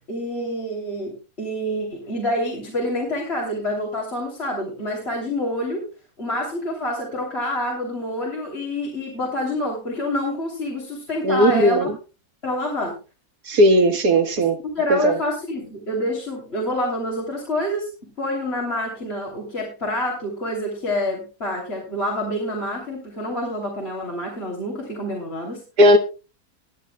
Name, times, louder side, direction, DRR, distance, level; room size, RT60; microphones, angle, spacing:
voice 1, 0.1-5.9 6.2-11.9 12.4-12.9 14.4-14.5 14.7-17.9 18.2-25.6, left 1 dB, 40° left, 3.4 m, -27 dB
voice 2, 11.2-12.0 13.5-14.6 14.9-15.1 25.8-26.0, equal, 85° right, 2.0 m, -16 dB
20.0 x 11.0 x 2.2 m
omnidirectional pair, 1.6 m